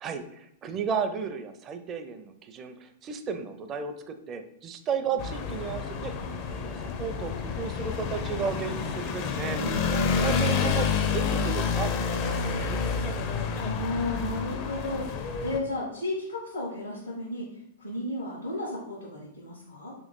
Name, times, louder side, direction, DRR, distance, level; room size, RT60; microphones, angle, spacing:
voice 1, 0.0-9.8 10.2-10.9 11.1-13.3, right 6 dB, 30° right, 8 dB, 0.4 m, -34 dB
sound 1, 5.2-15.6, left 5 dB, 40° left, 0.5 m, -29 dB
voice 2, 13.6-19.9, left 1 dB, 85° left, -6 dB, 1.2 m, -34 dB
3.0 x 2.9 x 3.9 m, 0.78 s
figure-of-eight pair, 100°, 0 cm